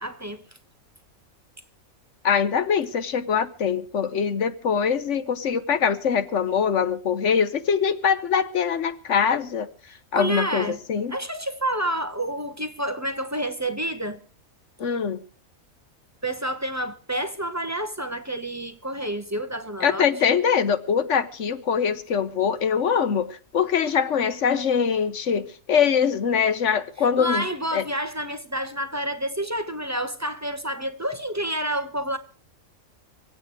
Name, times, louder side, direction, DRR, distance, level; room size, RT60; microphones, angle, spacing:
voice 1, 0.0-0.4 10.1-10.8 11.1-14.2 16.2-20.1 27.0-32.2, right 1 dB, 15° right, 0.9 m, -29 dB
voice 2, 2.2-9.7 10.1-11.1 14.8-15.2 19.8-27.4 27.7-27.8, left 7 dB, 60° left, 1.2 m, -23 dB
25.0 x 8.7 x 4.8 m
omnidirectional pair, 1.5 m